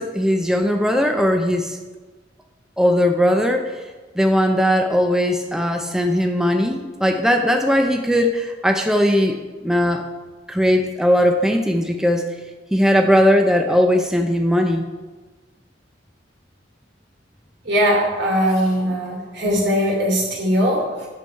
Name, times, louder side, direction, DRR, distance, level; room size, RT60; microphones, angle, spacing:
voice 1, 0.0-1.8 2.8-3.9 4.2-10.1 10.5-12.2 12.7-14.9, equal, 5° right, 4 dB, 0.5 m, -19 dB
voice 2, 17.6-21.1, equal, 75° right, -2 dB, 3.0 m, -20 dB
9.0 x 7.0 x 4.5 m, 1.3 s
head